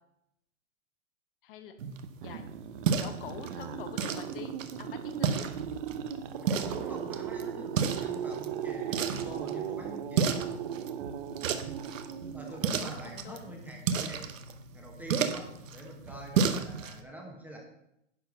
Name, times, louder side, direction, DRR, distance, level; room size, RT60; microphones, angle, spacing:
voice 1, 1.4-1.7 2.2-2.5 3.0-5.5 12.5-13.6, left 8 dB, 45° left, 8 dB, 1.0 m, -45 dB
sound 1, 1.8-17.0, right 6 dB, 80° right, 1.1 m, -34 dB
sound 2, 2.0-13.1, right 9 dB, 45° right, 0.8 m, -38 dB
voice 2, 6.4-10.5 12.3-14.3 14.7-17.6, right 1 dB, 5° right, 0 dB, 1.0 m, -46 dB
10.5 x 4.5 x 6.6 m, 0.80 s
hypercardioid pair, 160°, 39 cm